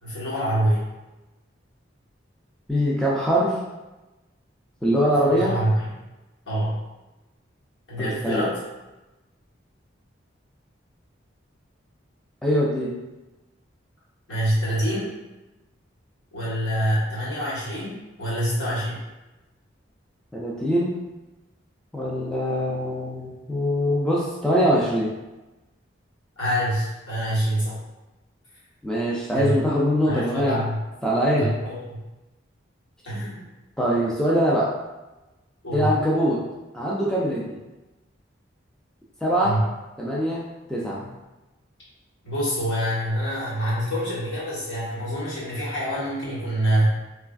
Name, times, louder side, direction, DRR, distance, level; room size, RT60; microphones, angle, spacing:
voice 1, 0.0-0.9 5.2-5.9 6.5-6.8 7.9-8.6 14.3-15.1 16.3-19.0 26.4-27.8 29.3-29.5 30.1-30.8 31.3-32.0 33.0-33.4 35.6-35.9 39.4-39.6 42.2-46.9, equal, 75° left, -8 dB, 1.3 m, -26 dB
voice 2, 2.7-3.6 4.8-5.6 8.0-8.4 12.4-13.0 20.3-21.0 21.9-25.1 28.8-30.6 31.0-31.5 33.8-34.7 35.7-36.4 36.7-37.6 39.2-39.6 40.0-40.4 40.7-41.1, equal, 5° left, -6 dB, 0.3 m, -23 dB
3.2 x 2.3 x 2.4 m, 1.1 s
head